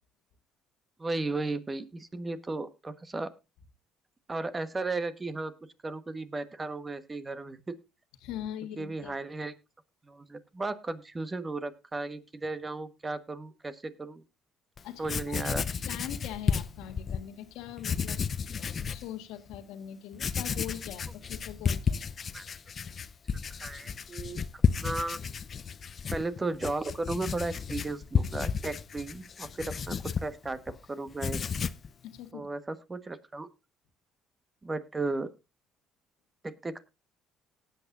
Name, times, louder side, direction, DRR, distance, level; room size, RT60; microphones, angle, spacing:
voice 1, 1.0-3.3 4.3-5.5 5.8-7.6 8.8-9.5 10.1-14.2 15.0-15.6 22.3-22.4 23.6-25.2 26.1-30.0 30.2-30.6 30.9-31.4 32.3-33.5 34.6-35.3 36.4-36.8, right 3 dB, 25° right, 12 dB, 1.4 m, -35 dB
voice 2, 8.2-9.2 14.8-15.4 15.8-18.2 18.6-22.0 32.0-32.5, left 11 dB, 80° left, 8 dB, 1.5 m, -41 dB
Writing, 14.8-14.9 15.0-17.2 17.8-19.1 19.5-19.6 20.1-30.8 31.1-31.9, left 6 dB, 45° left, 0.6 m, -32 dB
18.5 x 8.3 x 2.6 m, 0.27 s
supercardioid pair, 70°, 0 cm